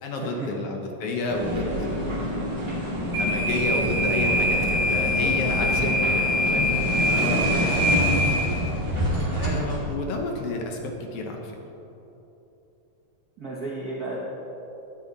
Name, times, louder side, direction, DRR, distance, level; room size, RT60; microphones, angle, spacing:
voice 1, 0.0-2.3 2.9-6.7 6.9-7.6 8.5-8.8 9.3-11.6, left 2 dB, 75° left, 1 dB, 1.3 m, -31 dB
sound 1, 1.3-9.9, equal, 15° right, 1.5 m, -24 dB
voice 2, 5.6-5.9 6.6-6.7 7.1-7.5 13.4-14.2, right 2 dB, 80° right, -5 dB, 0.8 m, -33 dB
13.5 x 8.9 x 4.0 m, 3.0 s
omnidirectional pair, 3.9 m